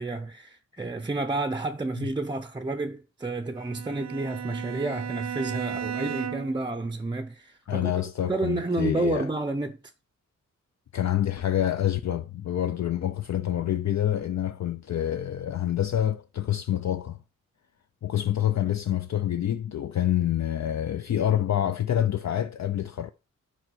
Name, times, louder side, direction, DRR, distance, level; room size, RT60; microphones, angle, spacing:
voice 1, 0.0-7.9 8.2-9.8, right 2 dB, 15° right, 0.6 m, -30 dB
Bowed string instrument, 3.6-6.7, right 9 dB, 55° right, 0.6 m, -35 dB
voice 2, 7.7-9.3 10.9-17.2 18.0-23.1, left 11 dB, 55° left, 0.6 m, -27 dB
9.5 x 4.6 x 6.2 m
wide cardioid pair, 125°, 32 cm